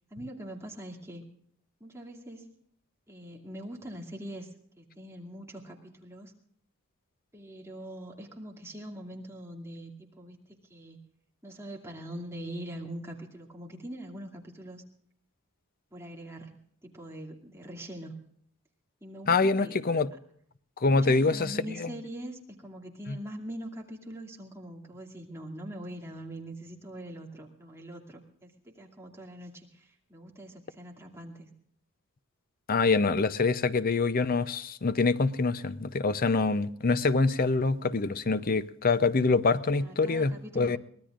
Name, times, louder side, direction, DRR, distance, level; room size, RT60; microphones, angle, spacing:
voice 1, 0.1-1.2 1.8-2.6 3.1-4.5 4.8-6.3 7.3-9.9 10.2-10.4 10.7-11.0 11.4-14.8 15.9-16.6 16.8-18.2 19.0-19.8 20.9-31.5 39.7-40.8, right 1 dB, 15° right, 2.4 m, -43 dB
voice 2, 19.3-20.1 20.8-21.5 21.8-21.9 23.1-23.2 32.7-40.8, left 3 dB, 40° left, 0.6 m, -25 dB
23.5 x 19.0 x 2.5 m
head